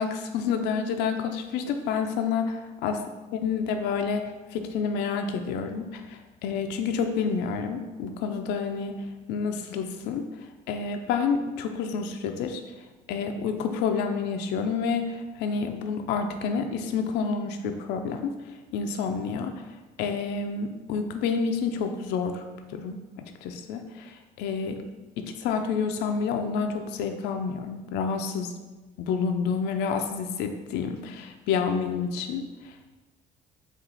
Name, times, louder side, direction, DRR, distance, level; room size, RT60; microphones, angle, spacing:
voice 1, 0.0-2.6 2.8-3.0 3.3-8.9 9.3-10.3 10.7-12.6 13.1-18.3 18.7-19.5 20.0-22.4 22.7-24.8 25.2-28.6 29.0-32.7, left 5 dB, 85° left, 5 dB, 0.4 m, -29 dB
4.4 x 2.4 x 3.8 m, 1.2 s
cardioid pair, 110°, 17 cm